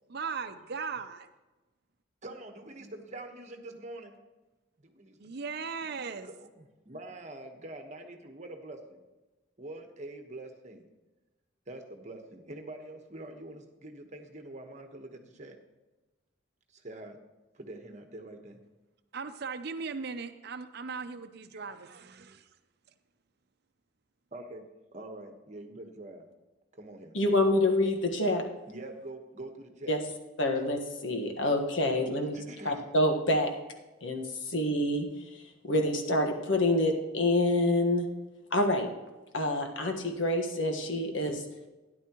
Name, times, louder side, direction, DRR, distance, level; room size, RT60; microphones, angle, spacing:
voice 1, 0.1-1.3 5.2-6.3 19.1-22.4, right 5 dB, 60° right, 9 dB, 0.7 m, -38 dB
voice 2, 2.2-4.2 4.8-5.3 5.6-9.0 9.6-10.9 11.7-15.6 16.7-17.2 17.5-18.6 21.5-21.6 24.3-24.7 24.9-26.3 26.7-27.1 28.7-30.0 32.3-32.8, right 2 dB, 40° right, 5 dB, 1.3 m, -45 dB
voice 3, 27.1-28.4 29.9-30.0 30.4-32.4 32.6-33.5 34.0-35.1 35.6-38.1 38.5-38.9 39.3-41.4, left 1 dB, 80° left, 4 dB, 1.5 m, -27 dB
13.0 x 10.5 x 3.0 m, 1.1 s
head